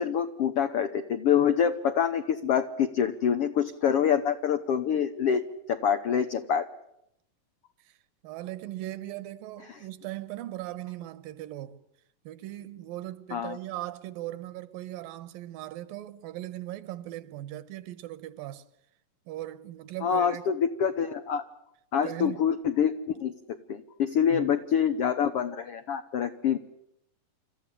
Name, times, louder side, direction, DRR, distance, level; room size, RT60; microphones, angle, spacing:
voice 1, 0.0-6.7 9.7-9.8 13.3-13.6 20.0-21.4 21.9-26.6, left 8 dB, 80° left, 1.3 m, -26 dB
voice 2, 8.2-11.8 12.2-18.7 19.3-20.4 22.0-22.4 24.3-24.5, right 15 dB, 80° right, 2.7 m, -39 dB
27.5 x 14.5 x 10.0 m
omnidirectional pair, 4.0 m